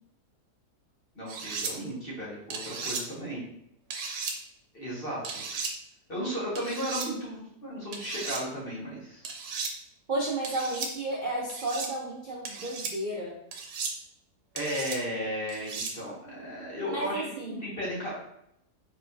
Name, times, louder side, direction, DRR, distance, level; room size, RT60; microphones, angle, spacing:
voice 1, 1.2-3.4 4.7-5.4 6.1-9.2 14.5-18.1, equal, 35° left, -6 dB, 1.6 m, -35 dB
sound 1, 1.3-1.7 2.5-3.0 3.9-4.4 5.2-5.7 6.6-7.1 7.9-8.4 9.2-9.7 10.4-10.9 11.5-11.9 12.4-12.9 13.5-13.9 14.6-15.0 15.5-15.9, right 4 dB, 80° right, 1.3 m, -35 dB
voice 2, 10.1-13.4 16.9-17.6, right 2 dB, 45° right, -4 dB, 0.7 m, -32 dB
4.7 x 4.2 x 2.6 m, 0.76 s
omnidirectional pair, 1.7 m